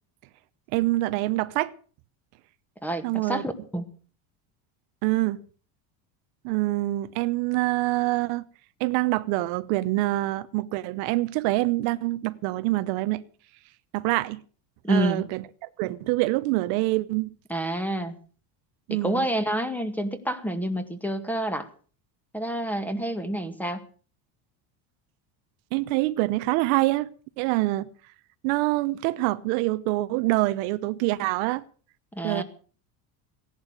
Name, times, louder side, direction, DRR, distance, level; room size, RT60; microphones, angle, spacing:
voice 1, 0.7-1.7 3.0-3.4 5.0-5.4 6.4-8.4 8.8-13.2 13.9-14.4 14.9-15.4 15.8-17.3 18.9-19.3 25.7-27.1 27.4-27.9 28.4-31.6 32.2-32.4, right 19 dB, 70° right, 1.0 m, -25 dB
voice 2, 2.8-3.8 14.8-15.2 17.5-18.2 18.9-21.7 22.3-23.8 32.1-32.4, right 1 dB, 5° left, 1.8 m, -28 dB
17.0 x 11.0 x 6.4 m
supercardioid pair, 125°, 48 cm